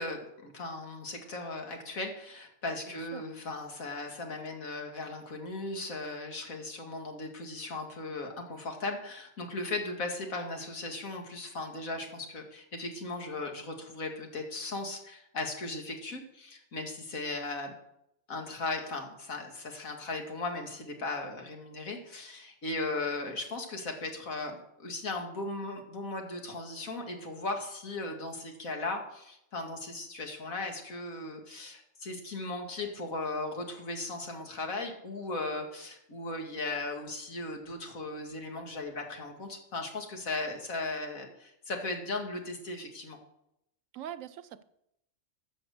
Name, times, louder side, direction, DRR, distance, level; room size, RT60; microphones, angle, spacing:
voice 1, 0.0-17.7 18.3-43.2, left 2 dB, 85° left, 2.4 m, -37 dB
voice 2, 2.9-3.2 43.9-44.6, right 10 dB, 75° right, 1.0 m, -43 dB
13.0 x 7.3 x 6.7 m
omnidirectional pair, 1.4 m